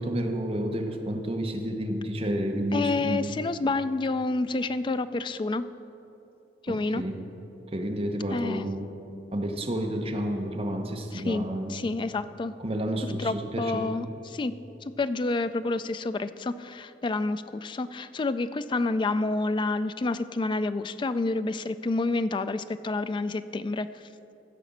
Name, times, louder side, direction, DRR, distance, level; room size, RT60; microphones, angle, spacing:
voice 1, 0.0-3.4 6.7-7.2 7.7-8.9 9.3-11.8 12.6-13.9, right 1 dB, 35° right, 3 dB, 1.0 m, -30 dB
voice 2, 2.7-5.7 6.6-7.0 8.3-8.6 11.1-12.5 13.2-14.6 14.9-24.0, left 3 dB, 25° left, 13 dB, 0.3 m, -29 dB
15.0 x 5.1 x 7.2 m, 2.9 s
head